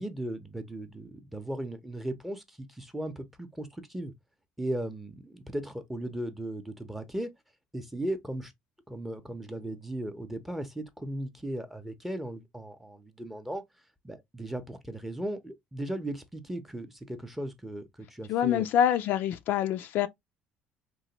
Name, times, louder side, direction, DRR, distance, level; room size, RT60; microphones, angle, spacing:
voice 1, 0.0-4.1 4.6-7.3 7.7-8.5 8.9-13.6 14.0-18.7, right 1 dB, 5° right, 0.6 m, -37 dB
voice 2, 18.3-20.1, left 10 dB, 65° left, 0.3 m, -26 dB
3.0 x 2.2 x 2.8 m
cardioid pair, 100°, 4 cm